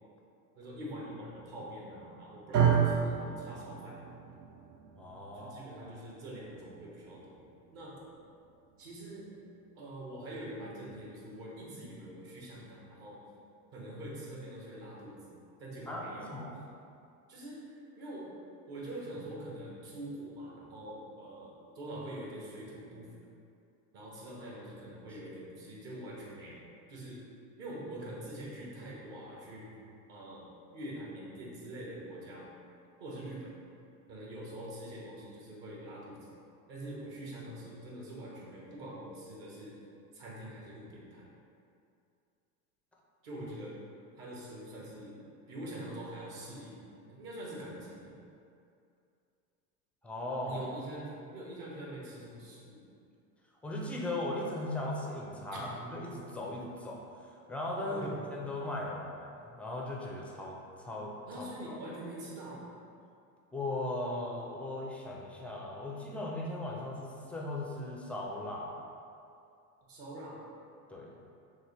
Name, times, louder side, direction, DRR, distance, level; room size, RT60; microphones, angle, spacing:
voice 1, 0.5-4.0 5.3-8.0 8.8-9.3 9.7-13.2 13.7-15.2 15.6-16.3 17.3-18.3 18.7-23.1 23.9-27.2 27.6-29.7 30.1-32.5 33.0-33.5 34.1-36.3 36.7-39.8 40.1-41.2 43.2-43.8 44.2-45.2 45.5-46.8 47.1-48.2 50.4-52.8 55.5-55.7 57.9-58.1 61.3-62.7 69.9-70.4, right 1 dB, 50° right, -5 dB, 1.5 m, -44 dB
sound 1, 2.5-10.8, right 7 dB, 85° right, 0.6 m, -34 dB
voice 2, 5.0-5.6 15.9-16.6 50.0-50.6 53.6-57.0 57.5-61.8 63.5-68.8 70.9-71.1, left 1 dB, 5° left, -2 dB, 0.4 m, -38 dB
6.2 x 2.2 x 3.3 m, 2.5 s
hypercardioid pair, 100°, 46 cm